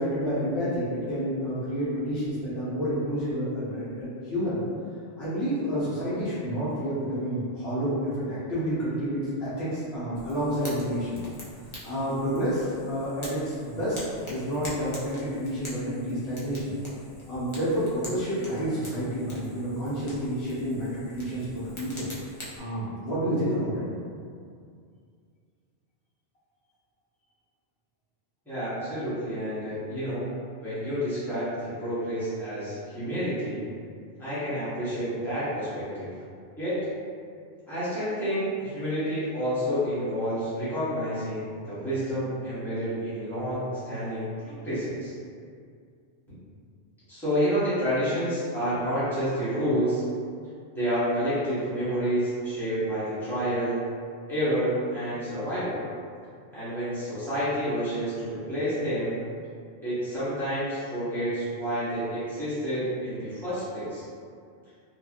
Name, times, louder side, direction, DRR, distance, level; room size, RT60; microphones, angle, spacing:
voice 1, 0.0-4.6 5.2-11.2 11.8-14.0 14.2-16.7 17.3-22.1 22.6-23.9, equal, 60° left, -11 dB, 1.0 m, -29 dB
Fire, 10.1-22.6, left 1 dB, 40° left, 0.4 m, -44 dB
voice 2, 28.5-30.3 30.6-33.6 34.2-36.1 36.6-36.8 37.7-45.1 47.1-50.0 50.7-53.8 54.3-55.8 56.5-59.2 59.8-64.0, equal, ahead, -15 dB, 1.1 m, -29 dB
3.0 x 2.3 x 2.4 m, 2.3 s
omnidirectional pair, 1.2 m